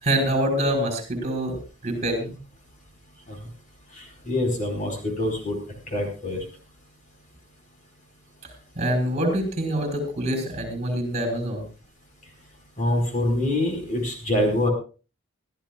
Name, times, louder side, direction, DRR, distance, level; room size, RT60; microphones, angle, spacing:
voice 1, 0.0-1.6 1.8-2.4 8.8-11.7, right 1 dB, 35° right, 3 dB, 5.3 m, -25 dB
voice 2, 3.9-5.6 5.9-6.4 12.8-14.7, left 1 dB, 40° left, 2 dB, 4.8 m, -25 dB
24.5 x 13.5 x 2.4 m, 0.35 s
head